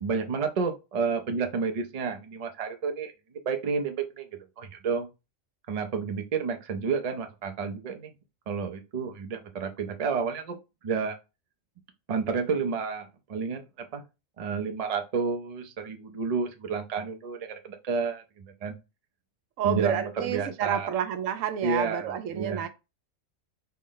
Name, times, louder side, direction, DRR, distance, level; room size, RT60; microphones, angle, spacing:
voice 1, 0.0-3.1 3.5-4.3 4.6-5.1 5.7-8.1 8.5-10.6 10.8-11.2 12.1-14.0 14.4-18.7 19.6-20.9 21.6-22.7, right 5 dB, 45° right, 0.5 m, -30 dB
voice 2, 19.6-22.7, right 9 dB, 75° right, 0.9 m, -29 dB
4.4 x 2.1 x 3.8 m
omnidirectional pair, 1.4 m